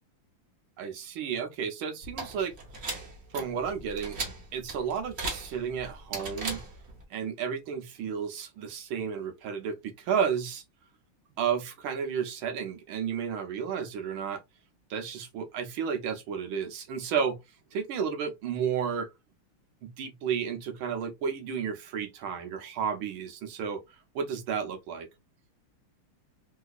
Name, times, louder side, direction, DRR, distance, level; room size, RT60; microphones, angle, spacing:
voice 1, 0.8-2.5 3.3-4.2 4.5-6.6 7.1-10.6 11.4-14.4 14.9-17.4 17.7-19.1 19.8-23.8 24.1-25.1, right 7 dB, 75° right, 1.5 m, -32 dB
sound 1, 2.0-7.0, right 3 dB, 40° right, 1.0 m, -38 dB
3.8 x 2.7 x 2.3 m
omnidirectional pair, 2.4 m